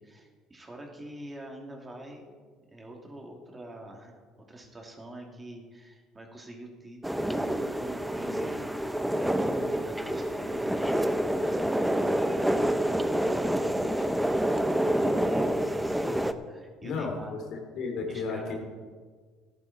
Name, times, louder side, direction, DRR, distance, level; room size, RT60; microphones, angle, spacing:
voice 1, 0.0-2.3 2.7-4.1 4.4-7.3 7.7-8.7 9.1-10.9 11.2-12.6 13.3-17.4 18.1-18.6, right 1 dB, 20° right, 1 dB, 2.9 m, -45 dB
sound 1, 7.0-16.3, right 1 dB, 5° right, 0.8 m, -27 dB
voice 2, 16.8-17.4 17.7-18.6, left 4 dB, 65° left, 2 dB, 3.0 m, -32 dB
15.0 x 11.0 x 4.3 m, 1.5 s
hypercardioid pair, 70°, 0 cm